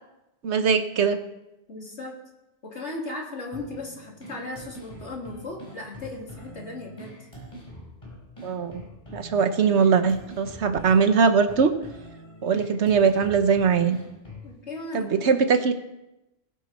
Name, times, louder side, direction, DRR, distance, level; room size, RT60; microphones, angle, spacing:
voice 1, 0.4-1.2 8.4-8.8 9.1-11.7 12.4-14.0 14.9-15.7, right 5 dB, 75° right, 9 dB, 1.3 m, -21 dB
voice 2, 1.7-2.2 2.6-7.1 14.4-15.7, left 2 dB, 80° left, -1 dB, 3.1 m, -37 dB
sound 1, 3.5-14.5, equal, 30° left, 4.4 m, -44 dB
20.0 x 9.8 x 4.3 m, 0.95 s
omnidirectional pair, 1.2 m